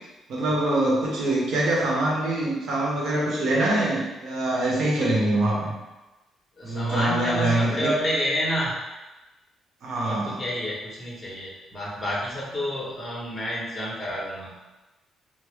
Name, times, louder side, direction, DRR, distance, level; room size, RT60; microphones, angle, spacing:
voice 1, 0.3-5.7 6.6-7.9 9.8-10.4, right 1 dB, 75° right, -3 dB, 0.9 m, -24 dB
voice 2, 6.6-8.7 10.0-14.6, equal, 20° left, -5 dB, 1.1 m, -29 dB
3.8 x 2.1 x 3.1 m, 1.1 s
cardioid pair, 90°, 0 cm